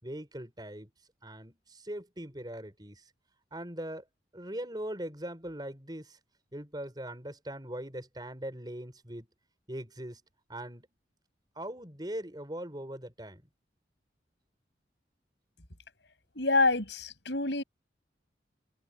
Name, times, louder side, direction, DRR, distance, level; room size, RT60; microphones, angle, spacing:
voice 1, 0.0-0.9 1.2-3.1 3.5-4.1 4.3-6.2 6.5-9.3 9.7-10.2 10.5-10.9 11.5-13.4, right 1 dB, 25° right, 5.1 m, -40 dB
voice 2, 16.4-17.6, left 3 dB, 75° left, 7.2 m, -27 dB
head